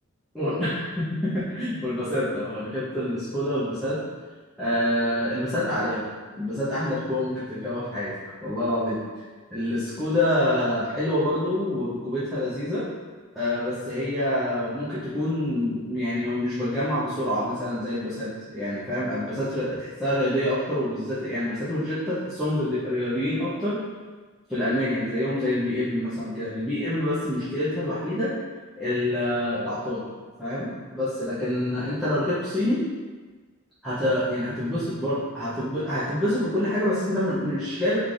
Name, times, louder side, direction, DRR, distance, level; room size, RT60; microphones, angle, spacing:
voice 1, 0.3-4.0 4.6-6.0 6.3-8.1 8.4-9.0 9.5-12.9 13.3-23.8 24.5-28.3 28.8-30.1 30.4-32.8 33.8-38.0, left 1 dB, ahead, -14 dB, 0.5 m, -26 dB
3.2 x 2.4 x 3.8 m, 1.4 s
head